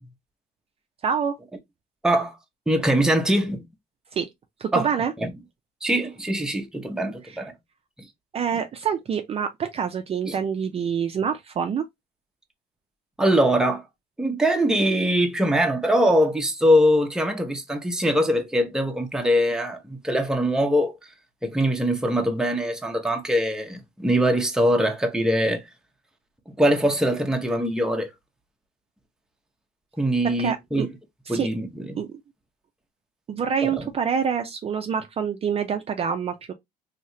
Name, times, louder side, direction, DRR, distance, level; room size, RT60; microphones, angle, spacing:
voice 1, 1.0-1.4 4.1-4.3 4.6-5.1 7.3-7.4 8.3-11.8 30.2-30.9 31.3-31.5 31.9-32.1 33.3-36.5, right 7 dB, 35° right, 0.4 m, -26 dB
voice 2, 2.7-3.6 4.7-4.9 5.2-5.3 5.8-7.5 10.3-10.4 13.2-13.8 14.2-20.9 21.4-25.6 26.5-28.1 30.0-30.9 31.3-32.0, equal, 5° right, 0.7 m, -22 dB
3.1 x 2.8 x 2.6 m
cardioid pair, 110°, 17 cm